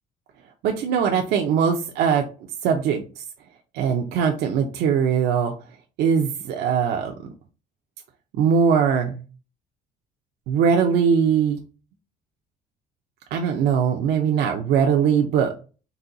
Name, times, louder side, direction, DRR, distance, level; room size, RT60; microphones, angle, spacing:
voice 1, 0.6-2.2 2.6-3.2 3.7-5.5 6.0-7.3 8.4-9.2 10.5-11.6 13.3-15.6, right 7 dB, 80° right, 3 dB, 0.6 m, -21 dB
4.1 x 2.3 x 3.8 m, 0.34 s
cardioid pair, 110°, 17 cm